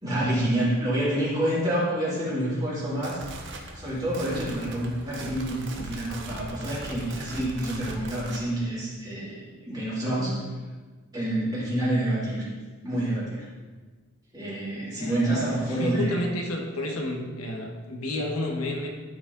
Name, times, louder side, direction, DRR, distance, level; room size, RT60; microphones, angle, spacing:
voice 1, 0.0-3.2 3.7-10.4 11.1-12.5 12.8-13.4 14.3-16.2, right 1 dB, 20° right, -9 dB, 3.0 m, -28 dB
sound 1, 2.8-8.5, right 2 dB, 55° right, 1.0 m, -40 dB
voice 2, 15.0-18.9, left 1 dB, 90° left, 1 dB, 1.4 m, -31 dB
12.5 x 5.0 x 4.0 m, 1.4 s
head